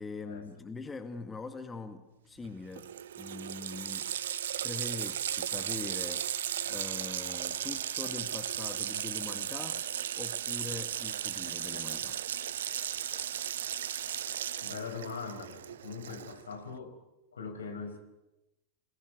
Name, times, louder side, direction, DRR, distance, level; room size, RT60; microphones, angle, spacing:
voice 1, 0.0-4.1 4.6-6.3 6.7-9.8 10.2-12.2, left 3 dB, 15° left, 8 dB, 2.0 m, -42 dB
Water tap faucet, 2.4-2.5 2.7-16.5, right 10 dB, 60° right, 0.9 m, -36 dB
voice 2, 14.6-17.0 17.3-18.0, left 5 dB, 70° left, 6 dB, 5.4 m, -41 dB
29.0 x 20.0 x 9.6 m, 0.98 s
figure-of-eight pair, 90°, 0 cm